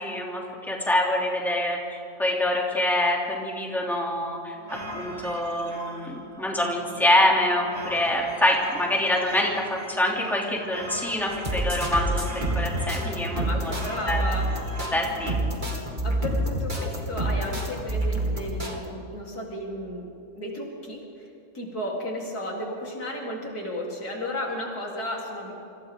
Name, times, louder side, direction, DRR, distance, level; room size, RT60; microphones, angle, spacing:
voice 1, 0.0-1.8 2.2-13.7 14.1-14.2 14.9-15.4, left 1 dB, ahead, -2 dB, 3.0 m, -25 dB
sound 1, 4.5-15.3, equal, 85° right, 3.0 m, -40 dB
sound 2, 11.3-18.8, right 1 dB, 30° right, 2.6 m, -28 dB
voice 2, 13.3-14.5 16.0-20.1 20.4-25.6, left 1 dB, 80° left, -3 dB, 4.3 m, -34 dB
28.5 x 26.0 x 3.9 m, 2.8 s
omnidirectional pair, 1.6 m